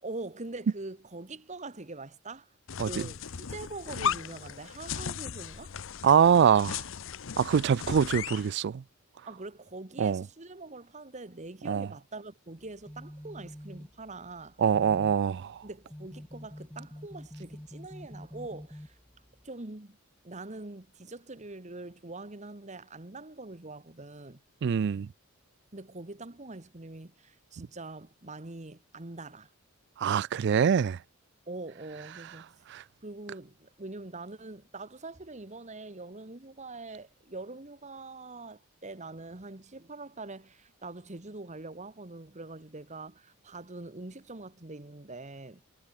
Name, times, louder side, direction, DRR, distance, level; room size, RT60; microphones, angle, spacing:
voice 1, 0.0-2.5 2.8-5.7 9.3-14.6 15.6-18.9 19.4-20.0 20.2-24.4 25.7-29.5 31.5-32.5 33.0-45.6, right 2 dB, 35° right, 1.4 m, -43 dB
sound 1, 2.7-8.5, left 7 dB, 65° left, 0.8 m, -36 dB
voice 2, 6.0-6.8 7.4-8.8 10.0-10.2 11.7-11.9 14.6-15.6 24.6-25.1 30.0-31.0 32.7-32.8, right 7 dB, 55° right, 0.3 m, -24 dB
sound 2, 12.6-19.5, equal, 5° left, 0.7 m, -47 dB
head